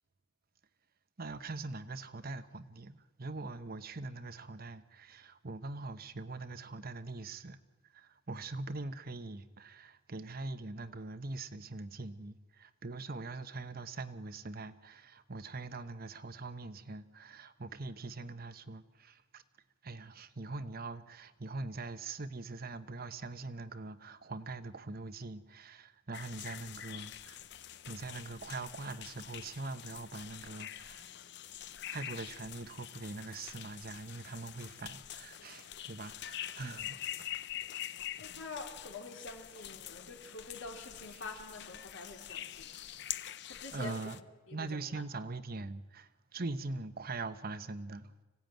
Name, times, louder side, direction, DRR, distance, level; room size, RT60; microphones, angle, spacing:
voice 1, 1.2-19.4 19.8-27.5 27.9-31.1 31.9-37.5 41.1-41.2 43.7-44.2 44.5-48.1, right 3 dB, 50° right, 1.0 m, -43 dB
sound 1, 26.1-44.2, left 11 dB, 60° left, 0.7 m, -45 dB
voice 2, 38.2-42.8 43.5-44.0 44.5-44.7, left 3 dB, 80° left, 3.7 m, -46 dB
25.0 x 16.5 x 9.2 m
head